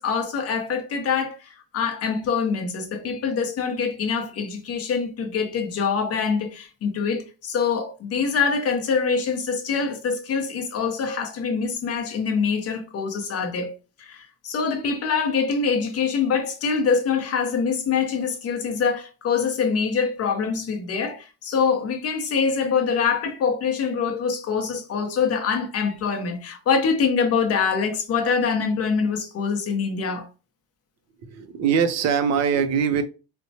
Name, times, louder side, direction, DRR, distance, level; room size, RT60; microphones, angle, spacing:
voice 1, 0.0-13.7 14.0-30.3, left 5 dB, 35° left, 0.6 m, -24 dB
voice 2, 31.2-33.0, right 7 dB, 40° right, 0.4 m, -22 dB
4.2 x 2.1 x 2.7 m
cardioid pair, 175°, 46 cm